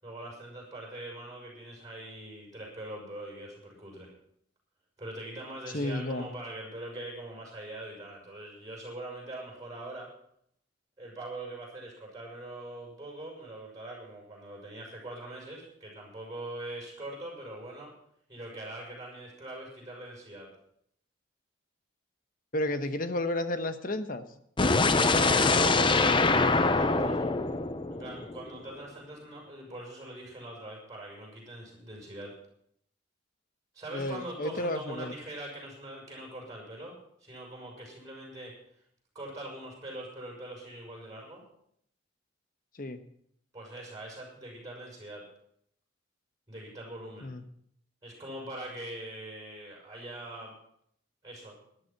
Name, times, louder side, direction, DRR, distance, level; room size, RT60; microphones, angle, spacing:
voice 1, 0.0-4.1 5.0-10.1 11.0-17.9 18.3-20.5 25.0-27.3 27.9-32.4 33.7-38.5 39.1-41.4 43.5-45.3 46.5-47.3 48.0-50.5 51.2-51.5, right 1 dB, 20° right, -2 dB, 6.3 m, -42 dB
voice 2, 5.7-6.3 22.5-24.2 33.9-35.1 42.7-43.0 47.2-47.4, left 1 dB, 45° left, 10 dB, 1.1 m, -32 dB
sound 1, 24.6-28.6, left 3 dB, 25° left, 0.7 m, -24 dB
14.5 x 11.5 x 5.9 m, 0.69 s
head